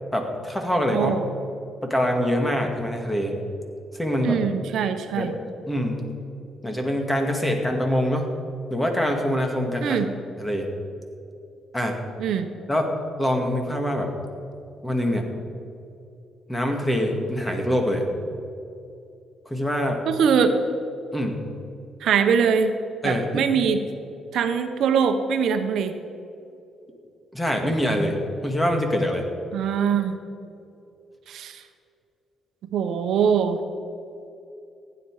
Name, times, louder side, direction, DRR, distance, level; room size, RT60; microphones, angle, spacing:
voice 1, 0.1-1.1 1.8-3.4 3.9-4.4 5.1-5.3 5.7-6.1 6.6-8.3 8.7-10.0 10.4-10.7 11.7-12.0 12.7-12.9 13.2-14.1 14.8-15.3 16.5-18.1 19.5-20.0 21.1-21.4 23.0-23.5 27.3-28.2 28.4-29.3, equal, 10° left, 2 dB, 2.2 m, -24 dB
voice 2, 0.9-1.2 4.2-5.4 9.8-10.1 12.2-12.5 20.1-20.5 22.0-22.7 23.0-23.8 24.3-26.0 29.5-30.2 31.3-31.6 32.7-33.6, right 6 dB, 75° right, 8 dB, 0.9 m, -22 dB
15.5 x 9.8 x 4.9 m, 2.6 s
cardioid pair, 90°, 0 cm